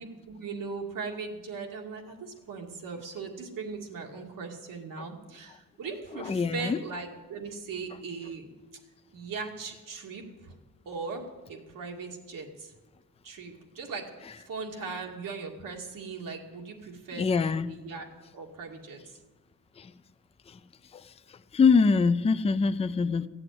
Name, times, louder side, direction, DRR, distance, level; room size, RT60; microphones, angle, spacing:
voice 1, 0.0-8.5 9.1-10.5 10.9-12.7 13.2-18.1 18.3-19.0, right 4 dB, 85° right, 1 dB, 2.2 m, -39 dB
voice 2, 6.3-6.8 17.2-17.8 19.8-19.9 21.5-23.3, left 5 dB, 20° left, 12 dB, 0.4 m, -23 dB
15.0 x 7.8 x 9.1 m, 1.2 s
wide cardioid pair, 135°, 32 cm